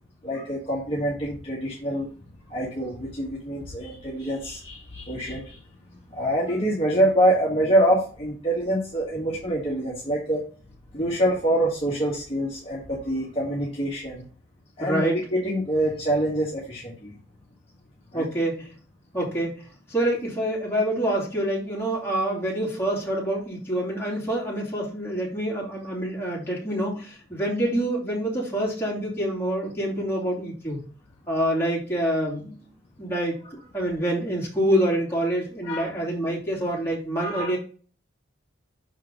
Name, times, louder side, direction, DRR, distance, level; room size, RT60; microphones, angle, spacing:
voice 1, 0.2-2.1 2.5-5.6 6.1-10.4 10.9-14.2 14.8-17.1 18.1-18.2 35.6-35.9 37.2-37.5, right 1 dB, 30° left, -6 dB, 1.6 m, -25 dB
voice 2, 14.8-15.2 18.1-18.7 19.1-30.8 31.3-32.7 33.0-37.6, right 1 dB, 10° left, -5 dB, 2.7 m, -26 dB
6.2 x 4.6 x 3.7 m, 0.41 s
head